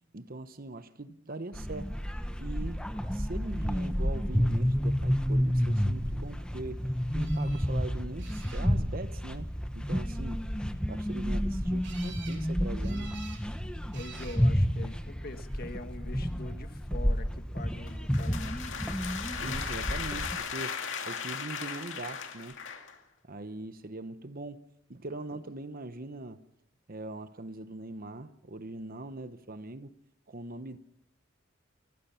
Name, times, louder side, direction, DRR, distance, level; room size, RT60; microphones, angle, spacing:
voice 1, 0.1-1.9 2.4-2.8 3.1-6.8 7.1-9.5 9.7-10.5 10.9-13.1 19.4-20.8 21.1-22.6 23.2-24.6 24.9-26.4 26.9-29.9 30.3-30.8, right 2 dB, 50° right, 1.0 m, -41 dB
sound 1, 1.5-20.4, equal, 5° left, 1.2 m, -30 dB
sound 2, 7.2-7.6 8.2-8.9 11.8-12.4 12.8-13.4 13.9-14.4 15.3-15.8 22.0-22.2 22.5-22.6, right 6 dB, 65° right, 3.9 m, -49 dB
voice 2, 13.9-18.6, left 2 dB, 50° left, 1.7 m, -44 dB
sound 3, 17.9-23.0, left 6 dB, 75° left, 2.2 m, -37 dB
29.5 x 16.0 x 5.8 m
head